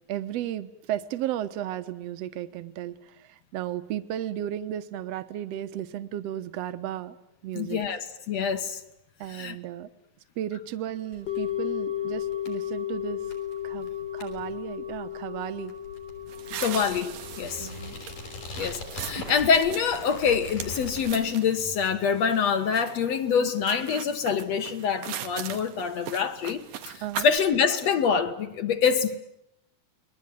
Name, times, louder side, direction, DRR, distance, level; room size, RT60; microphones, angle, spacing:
voice 1, 0.1-7.2 7.4-7.8 9.2-9.9 10.4-13.2 13.6-15.7 17.6-18.0 23.3-23.5 27.0-27.3, right 11 dB, 60° right, 2.0 m, -34 dB
voice 2, 7.6-8.8 9.3-9.6 16.6-17.7 18.6-29.2, left 6 dB, 60° left, 2.4 m, -25 dB
sound 1, 11.1-21.1, left 2 dB, 75° left, 6.9 m, -43 dB
sound 2, 11.3-21.5 21.8-21.9, left 11 dB, 35° left, 2.0 m, -35 dB
sound 3, 16.3-27.4, right 10 dB, 85° right, 3.1 m, -40 dB
29.0 x 22.0 x 9.3 m
omnidirectional pair, 3.8 m